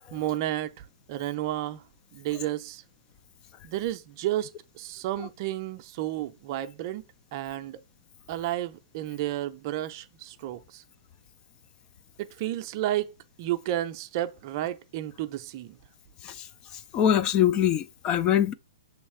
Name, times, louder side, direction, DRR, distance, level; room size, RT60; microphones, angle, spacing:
voice 1, 0.1-1.8 2.1-2.8 3.6-4.5 4.7-7.0 7.3-7.8 8.3-10.8 12.2-13.1 13.4-15.8, right 13 dB, 40° right, 0.5 m, -32 dB
voice 2, 16.9-18.5, left 10 dB, 25° left, 0.3 m, -23 dB
6.3 x 3.2 x 4.6 m
hypercardioid pair, 135°, 3 cm